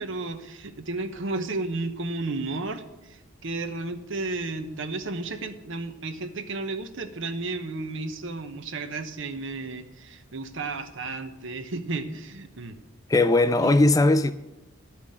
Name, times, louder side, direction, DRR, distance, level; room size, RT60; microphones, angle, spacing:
voice 1, 0.0-12.8 13.6-13.8, right 3 dB, 60° right, 0.9 m, -33 dB
voice 2, 13.1-14.3, left 2 dB, 15° left, 0.4 m, -19 dB
12.0 x 6.0 x 8.6 m
head